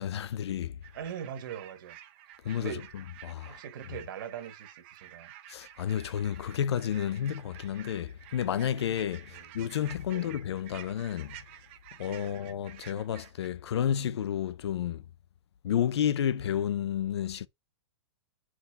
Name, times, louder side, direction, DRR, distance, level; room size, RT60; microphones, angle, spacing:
voice 1, 0.0-0.8 2.4-3.6 5.5-11.4 12.0-15.0 15.6-17.5, left 9 dB, 70° left, 0.6 m, -31 dB
sound 1, 0.8-13.5, right 12 dB, 25° right, 0.6 m, -51 dB
voice 2, 0.9-2.0 2.6-2.9 3.4-5.3 9.3-9.5 10.1-10.3 12.2-12.4, right 8 dB, 45° right, 1.4 m, -41 dB
9.4 x 4.9 x 3.5 m
hypercardioid pair, 180°, 15 cm